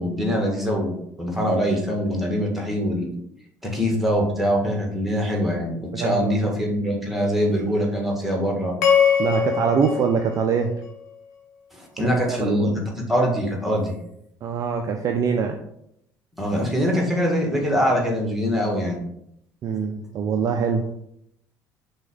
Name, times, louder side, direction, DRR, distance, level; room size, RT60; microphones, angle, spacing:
voice 1, 0.0-3.1 3.6-8.7 11.7-12.8 13.1-13.9 16.4-19.0, equal, ahead, 0 dB, 1.3 m, -23 dB
voice 2, 5.9-6.5 9.2-10.7 12.0-12.8 14.4-15.6 19.6-20.9, right 6 dB, 35° right, 4 dB, 0.4 m, -24 dB
sound 1, 8.8-11.2, left 7 dB, 65° left, 0.6 m, -22 dB
6.0 x 2.3 x 3.5 m, 0.76 s
figure-of-eight pair, 55°, 10 cm